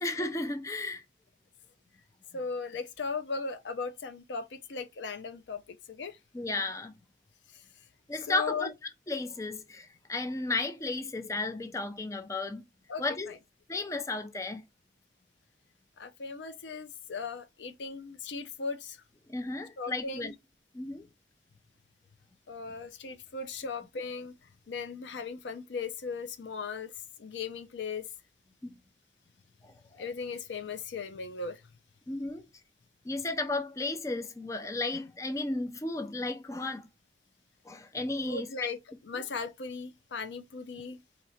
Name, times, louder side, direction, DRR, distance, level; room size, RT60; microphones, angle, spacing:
voice 1, 0.0-1.0 6.3-6.9 8.1-8.7 9.1-12.6 13.0-13.3 13.7-14.6 19.3-20.3 20.7-21.1 28.6-28.8 29.6-30.0 32.1-32.5 33.0-36.9 37.7-38.5, left 2 dB, 15° left, 0.4 m, -34 dB
voice 2, 2.3-5.6 5.9-6.2 7.5-7.6 8.3-8.7 12.9-13.3 16.0-19.0 19.8-20.3 22.5-24.3 24.7-26.9 27.2-28.0 30.0-31.6 38.2-38.8 39.0-41.0, left 4 dB, 90° left, 0.5 m, -37 dB
4.3 x 2.9 x 2.7 m
head